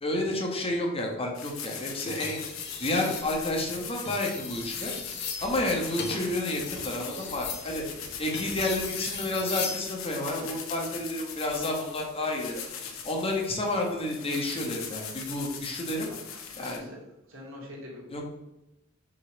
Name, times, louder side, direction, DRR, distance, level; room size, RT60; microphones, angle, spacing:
voice 1, 0.0-2.4 2.8-4.9 5.4-7.8 8.2-16.1 16.6-16.9 18.1-18.2, left 1 dB, 30° left, 0 dB, 1.4 m, -30 dB
sound 1, 1.3-16.8, left 7 dB, 80° left, 1.3 m, -40 dB
sound 2, 2.1-3.3 3.9-9.8 11.3-11.6, left 5 dB, 55° left, 1.3 m, -37 dB
voice 2, 16.5-17.0 17.3-18.1, left 1 dB, 75° right, -3 dB, 2.7 m, -44 dB
6.3 x 4.1 x 6.4 m, 0.94 s
head